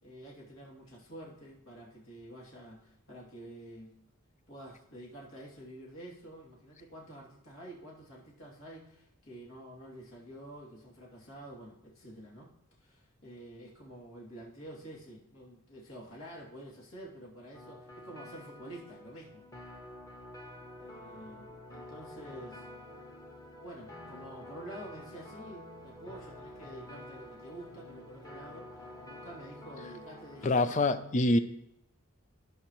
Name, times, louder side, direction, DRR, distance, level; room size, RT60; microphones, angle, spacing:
voice 1, 0.0-4.0 4.5-12.5 12.8-19.5 20.8-22.7 23.6-30.8, right 1 dB, 65° left, -4 dB, 2.6 m, -49 dB
sound 1, 17.5-30.5, left 1 dB, 15° left, 1.3 m, -49 dB
voice 2, 30.4-31.4, left 2 dB, 35° left, 11 dB, 0.5 m, -25 dB
15.5 x 5.5 x 3.1 m, 0.81 s
head